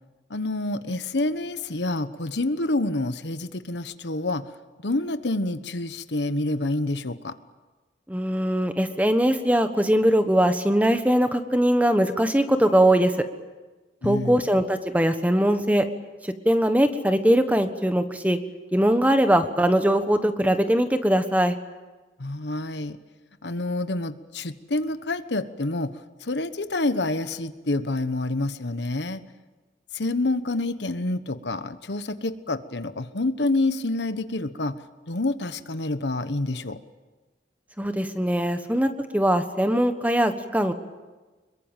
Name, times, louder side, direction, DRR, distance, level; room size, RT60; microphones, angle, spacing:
voice 1, 0.3-4.4 4.8-7.3 14.0-14.4 22.2-23.0 23.4-25.9 26.2-29.2 29.9-34.7 35.1-36.8, left 2 dB, 75° left, 11 dB, 1.2 m, -27 dB
voice 2, 8.1-13.2 14.0-15.9 16.4-18.4 18.7-21.5 37.8-40.7, right 1 dB, 10° right, 8 dB, 1.3 m, -21 dB
26.0 x 22.5 x 9.1 m, 1.2 s
head